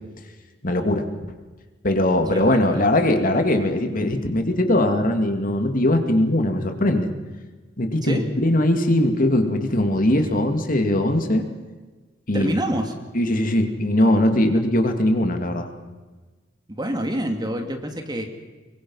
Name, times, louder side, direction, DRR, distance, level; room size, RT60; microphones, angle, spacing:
voice 1, 0.6-1.1 1.8-7.1 7.8-11.4 12.3-12.6 13.1-15.7, left 1 dB, 50° left, 6 dB, 2.4 m, -20 dB
voice 2, 2.3-2.8 8.0-8.3 12.3-12.9 16.7-18.3, right 1 dB, 20° right, 4 dB, 2.6 m, -27 dB
24.5 x 23.5 x 5.6 m, 1.3 s
head